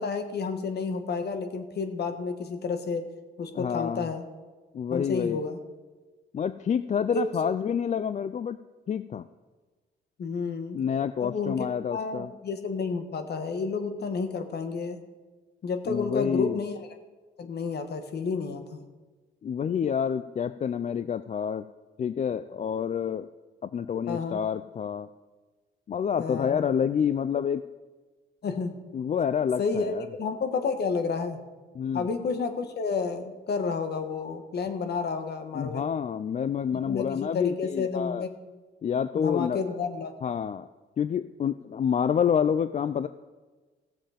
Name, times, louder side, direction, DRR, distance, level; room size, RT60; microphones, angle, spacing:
voice 1, 0.0-3.1 3.4-4.3 4.9-5.6 7.1-7.3 10.2-10.8 11.2-15.0 15.6-16.8 17.4-18.8 24.1-24.4 26.2-26.7 28.4-28.8 29.6-29.9 30.2-31.4 31.9-35.9 36.9-38.3 39.1-40.1, left 4 dB, 55° left, 7 dB, 1.5 m, -30 dB
voice 2, 3.5-4.1 4.7-5.4 6.3-8.6 8.9-9.2 10.7-12.3 15.9-16.6 19.4-21.6 22.0-23.3 23.6-25.1 25.9-27.6 28.9-30.1 31.8-32.1 35.5-38.3 38.8-39.8 40.2-40.7 41.0-43.1, left 7 dB, 35° left, 13 dB, 0.4 m, -28 dB
16.5 x 7.3 x 5.1 m, 1.3 s
cardioid pair, 90°, 20 cm